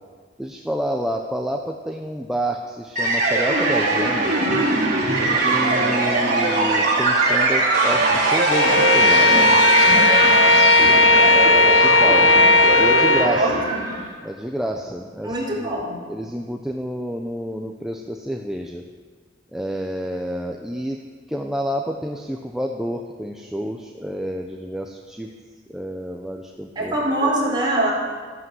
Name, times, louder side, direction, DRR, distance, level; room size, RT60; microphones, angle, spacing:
voice 1, 0.4-4.4 5.3-9.4 11.8-12.3 12.7-13.6 14.2-15.8 16.1-18.8 19.5-21.0 21.3-25.3 25.7-27.0, equal, 5° right, 2 dB, 0.8 m, -29 dB
sound 1, 3.0-14.1, right 2 dB, 45° right, 4.6 m, -20 dB
Bowed string instrument, 8.5-13.4, left 2 dB, 85° left, 1.1 m, -15 dB
voice 2, 11.0-11.4 13.3-13.9 15.2-15.9 26.8-27.9, right 1 dB, 25° right, -4 dB, 4.7 m, -24 dB
14.0 x 11.5 x 7.9 m, 1.5 s
head